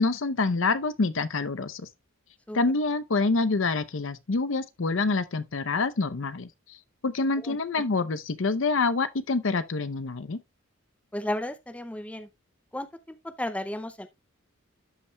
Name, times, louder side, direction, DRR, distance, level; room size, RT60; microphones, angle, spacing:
voice 1, 0.0-1.9 2.5-6.5 7.0-10.4, left 3 dB, 65° left, 0.7 m, -26 dB
voice 2, 11.1-12.3 12.7-14.1, left 1 dB, 5° left, 0.4 m, -34 dB
12.5 x 5.6 x 2.2 m
head